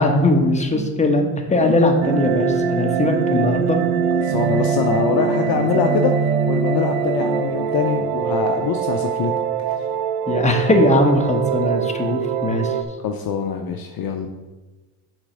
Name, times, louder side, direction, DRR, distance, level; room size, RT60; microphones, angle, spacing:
voice 1, 0.0-3.8 5.7-6.0 10.3-12.8, left 1 dB, 15° left, 3 dB, 1.3 m, -19 dB
sound 1, 2.0-12.8, right 7 dB, 80° right, 0.7 m, -22 dB
voice 2, 4.2-6.1 6.5-9.3 9.6-9.7 13.0-14.3, left 7 dB, 50° left, 4 dB, 0.7 m, -23 dB
6.1 x 4.3 x 6.4 m, 1.2 s
supercardioid pair, 80°, 48 cm